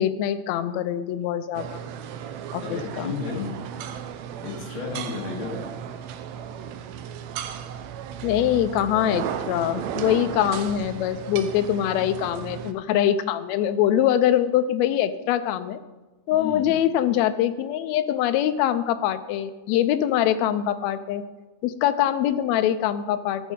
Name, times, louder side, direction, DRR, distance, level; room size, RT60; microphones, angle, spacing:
voice 1, 0.0-1.8 2.5-3.1 8.2-15.8 16.3-21.2 21.6-23.5, left 11 dB, 80° left, 11 dB, 1.8 m, -23 dB
sound 1, 1.5-12.7, right 9 dB, 80° right, 1.8 m, -35 dB
voice 2, 2.6-3.6 4.4-5.7 16.3-16.8, left 4 dB, 45° left, -2 dB, 2.6 m, -32 dB
13.5 x 7.1 x 3.7 m, 1.2 s
omnidirectional pair, 3.3 m